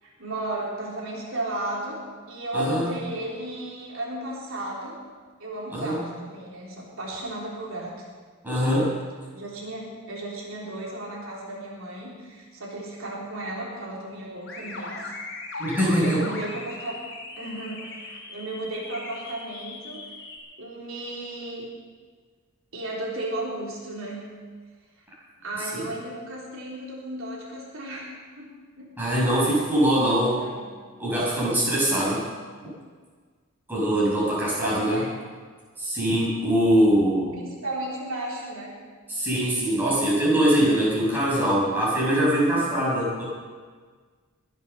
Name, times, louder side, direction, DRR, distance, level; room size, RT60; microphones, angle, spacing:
voice 1, 0.0-5.0 5.4-8.1 9.3-15.0 15.5-15.7 16.0-17.0 17.4-20.1 20.6-21.7 22.7-24.2 25.4-28.1 28.4-28.5 28.8-28.9 30.1-30.7 31.9-32.3 34.6-35.2 37.3-38.8, right 1 dB, 70° right, -4 dB, 3.6 m, -34 dB
voice 2, 2.5-2.9 5.7-6.0 8.4-8.9 15.6-16.2 25.7-25.8 29.0-30.4 31.0-32.2 33.7-35.0 35.8-37.4 39.1-43.2, equal, 10° right, -7 dB, 5.9 m, -22 dB
sound 1, 14.5-20.4, left 2 dB, 55° left, 4.1 m, -38 dB
21.5 x 8.1 x 6.8 m, 1.5 s
head